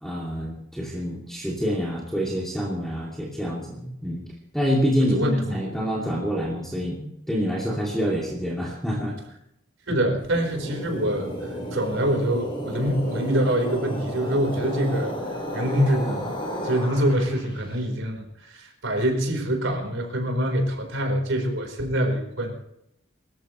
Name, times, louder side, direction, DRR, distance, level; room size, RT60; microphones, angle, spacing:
voice 1, 0.0-4.2 4.5-9.1, equal, ahead, -3 dB, 2.6 m, -27 dB
voice 2, 5.0-5.7 9.9-16.3 16.6-22.6, equal, 85° right, 3 dB, 4.4 m, -25 dB
sound 1, 10.2-17.6, equal, 30° left, 4.3 m, -32 dB
23.5 x 14.0 x 3.2 m, 0.79 s
head